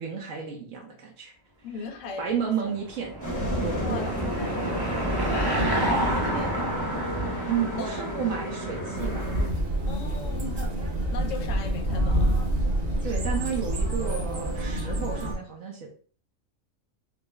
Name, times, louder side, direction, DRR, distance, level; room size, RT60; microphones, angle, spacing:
voice 1, 0.0-1.3 2.2-3.1 3.6-4.1 4.5-5.2 7.4-9.3 13.0-15.9, right 7 dB, 75° right, 0 dB, 1.1 m, -32 dB
voice 2, 1.6-2.4 3.8-4.1 4.4-4.7 5.3-6.9 7.7-8.1 9.9-10.7 11.1-12.4, left 4 dB, 75° left, 5 dB, 1.0 m, -38 dB
Car passing by / Engine, 2.4-9.2, right 1 dB, 20° right, 0.7 m, -30 dB
sound 1, 3.2-9.5, equal, 15° left, 0.9 m, -31 dB
sound 2, 9.0-15.4, right 1 dB, 50° right, 1.1 m, -27 dB
4.5 x 2.0 x 3.4 m, 0.42 s
omnidirectional pair, 1.4 m